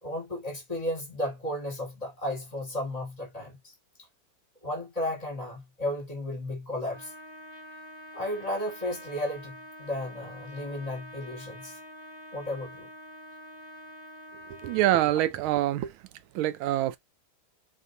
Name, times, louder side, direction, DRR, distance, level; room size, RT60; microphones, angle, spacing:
voice 1, 0.0-3.7 4.6-7.1 8.1-11.7 12.3-12.9, left 1 dB, 20° left, 1.5 m, -34 dB
Trumpet, 6.8-15.0, equal, 25° right, 0.5 m, -46 dB
voice 2, 14.6-15.9 16.3-17.0, right 14 dB, 80° right, 1.4 m, -25 dB
4.3 x 3.0 x 2.6 m
omnidirectional pair, 2.3 m